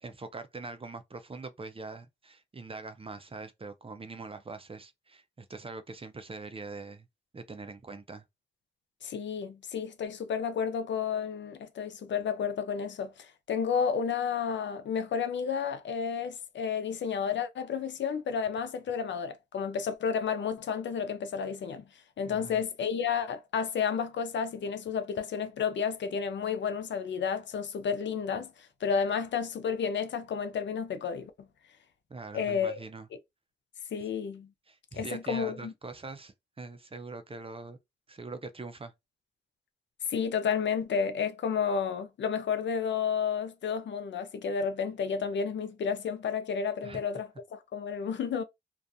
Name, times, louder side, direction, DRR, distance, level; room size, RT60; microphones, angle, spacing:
voice 1, 0.0-7.1 7.3-8.2 22.2-22.6 32.1-33.1 34.7-37.8 38.1-38.9 46.8-47.0, right 3 dB, 30° right, 0.5 m, -43 dB
voice 2, 9.0-21.8 22.2-28.5 28.8-31.3 32.3-32.8 33.9-34.5 34.9-35.7 40.1-48.4, left 6 dB, 85° left, 0.5 m, -31 dB
2.4 x 2.3 x 2.6 m
cardioid pair, 55°, 18 cm